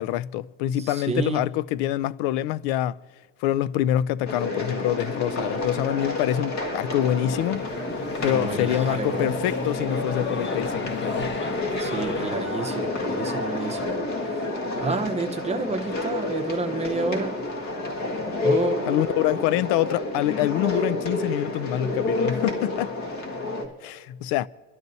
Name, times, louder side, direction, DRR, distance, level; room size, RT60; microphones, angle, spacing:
voice 1, 0.0-3.0 3.4-7.7 8.2-11.3 18.9-22.9 23.8-24.5, left 13 dB, 80° left, 0.5 m, -25 dB
voice 2, 0.8-1.5 8.3-9.3 11.8-14.0 14.8-17.4 18.4-18.8, right 3 dB, 15° right, 0.9 m, -29 dB
sound 1, 4.3-23.7, left 2 dB, 45° left, 1.9 m, -29 dB
sound 2, 7.3-12.3, left 3 dB, 30° left, 1.0 m, -34 dB
27.5 x 12.0 x 2.7 m
cardioid pair, 145°, 39 cm